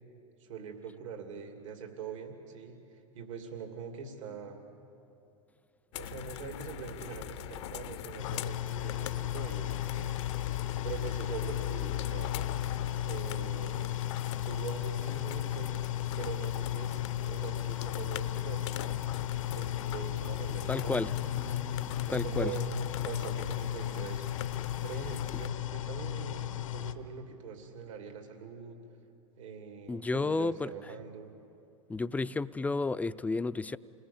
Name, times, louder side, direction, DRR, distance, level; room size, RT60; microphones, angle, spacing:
voice 1, 0.4-4.6 6.0-10.2 10.8-12.3 13.1-13.9 14.4-15.7 16.2-19.0 19.5-21.6 22.1-24.3 24.8-28.8 29.4-31.3, right 6 dB, 75° right, 4 dB, 2.8 m, -43 dB
sound 1, 5.9-25.5, left 12 dB, 65° left, 0.8 m, -41 dB
sound 2, 8.2-26.9, left 12 dB, 85° left, 1.2 m, -35 dB
voice 2, 20.7-21.1 22.1-22.5 29.9-30.7 31.9-33.8, left 3 dB, 10° left, 13 dB, 0.5 m, -31 dB
28.0 x 20.5 x 7.3 m, 2.7 s
hypercardioid pair, 100°, 16 cm